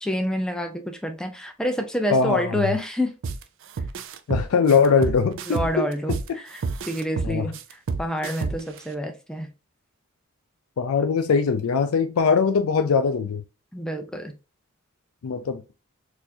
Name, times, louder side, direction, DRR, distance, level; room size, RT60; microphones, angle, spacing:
voice 1, 0.0-3.1 5.5-7.6 8.0-9.5 13.7-14.3, equal, 5° left, 0.4 m, -28 dB
voice 2, 2.1-2.7 4.3-5.9 7.2-7.5 10.8-13.4 15.2-15.6, left 5 dB, 85° left, 0.4 m, -21 dB
sound 1, 3.2-3.4 3.8-6.3 6.6-8.8, right 4 dB, 65° right, 0.4 m, -28 dB
4.1 x 2.6 x 2.7 m
head